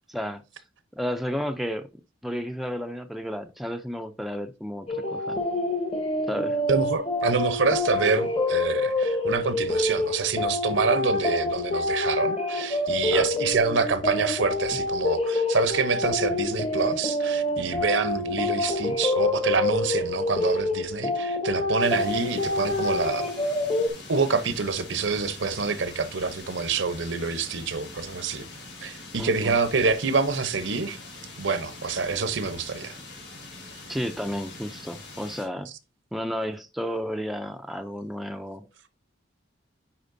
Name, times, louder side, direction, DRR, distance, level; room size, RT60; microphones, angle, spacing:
voice 1, 0.1-0.4 0.9-1.9 2.2-5.4 6.3-6.6 13.1-13.3 29.2-29.5 33.9-35.7 36.1-38.7, equal, ahead, 0.4 m, -32 dB
sound 1, 4.9-23.9, left 2 dB, 30° left, 1.0 m, -27 dB
voice 2, 6.7-23.3 24.1-28.5 28.8-31.0 31.4-33.0, right 4 dB, 75° right, 0.8 m, -26 dB
sound 2, 21.8-35.5, left 2 dB, 70° left, 4.0 m, -43 dB
10.0 x 4.2 x 2.6 m
head